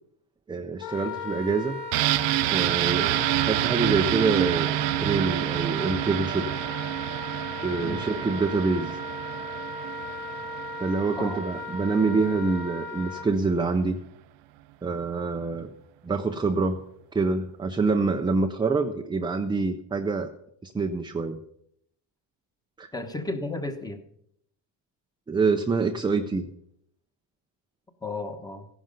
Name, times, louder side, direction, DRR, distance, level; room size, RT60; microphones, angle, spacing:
voice 1, 0.5-1.8 2.4-4.7 5.0-6.4 7.6-9.0 10.8-14.0 14.8-15.7 16.0-16.8 17.1-20.3 20.6-21.4 22.8-22.9 25.3-26.5, right 4 dB, 10° right, 5 dB, 0.5 m, -26 dB
Wind instrument woodwind instrument, 0.8-13.3, left 1 dB, 65° left, 1.9 m, -36 dB
sound 1, 1.9-11.5 11.9-12.0, right 16 dB, 65° right, 0.7 m, -28 dB
voice 2, 22.9-24.0 28.0-28.7, left 2 dB, 10° left, 8 dB, 1.2 m, -33 dB
15.5 x 11.0 x 5.2 m, 0.72 s
cardioid pair, 140°, 45 cm